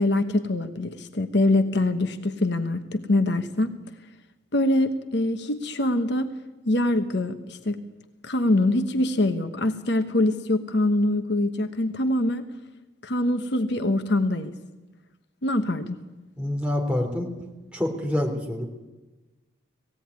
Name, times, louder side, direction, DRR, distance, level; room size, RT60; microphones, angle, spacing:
voice 1, 0.0-3.7 4.5-6.3 6.7-7.8 8.2-12.5 13.0-14.5 15.4-16.0, left 1 dB, 60° left, 8 dB, 1.1 m, -24 dB
voice 2, 16.4-17.3 17.7-18.7, left 1 dB, 5° right, 1 dB, 3.2 m, -26 dB
19.0 x 16.0 x 9.5 m, 1.1 s
head